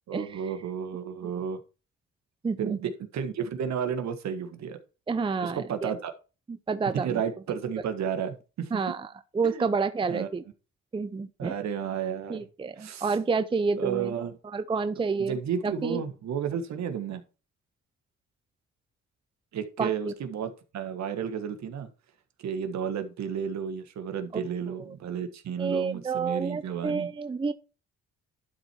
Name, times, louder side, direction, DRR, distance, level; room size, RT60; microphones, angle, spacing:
voice 1, 0.1-1.6 2.6-4.8 5.4-6.1 6.8-8.9 9.4-9.6 10.1-10.3 11.4-12.4 12.8-13.2 13.8-14.4 15.2-17.2 19.5-21.9 22.4-27.1, right 7 dB, 65° right, 1.5 m, -32 dB
voice 2, 2.4-2.8 5.1-5.9 6.7-7.2 8.7-9.1 9.3-10.4 10.9-11.5 12.3-14.1 14.5-15.4 15.6-16.0 19.8-20.1 24.3-24.4 25.6-27.5, right 4 dB, 15° right, 0.5 m, -29 dB
11.5 x 4.4 x 4.5 m
cardioid pair, 90°, 30 cm